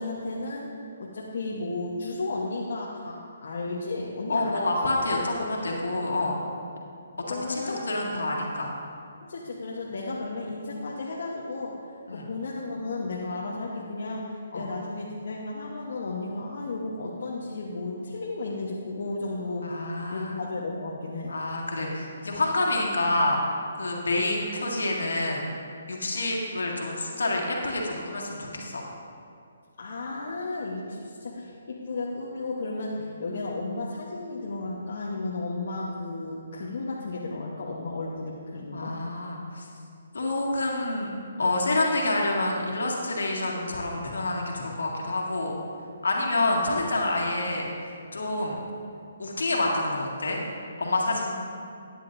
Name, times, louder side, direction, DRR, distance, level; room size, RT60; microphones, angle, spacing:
voice 1, 0.0-4.7 7.0-8.1 9.2-21.4 29.8-39.0, left 2 dB, 65° left, -4 dB, 1.1 m, -34 dB
voice 2, 4.3-6.4 7.3-8.7 12.1-12.2 14.5-14.7 19.6-20.4 21.3-23.4 23.8-25.5 25.9-28.8 38.7-39.7 40.1-41.1 41.4-45.6 46.0-47.7 48.1-48.6 49.2-50.4 50.8-51.3, left 2 dB, 80° left, -1 dB, 2.0 m, -27 dB
13.5 x 9.7 x 2.6 m, 2.4 s
hypercardioid pair, 145°, 0 cm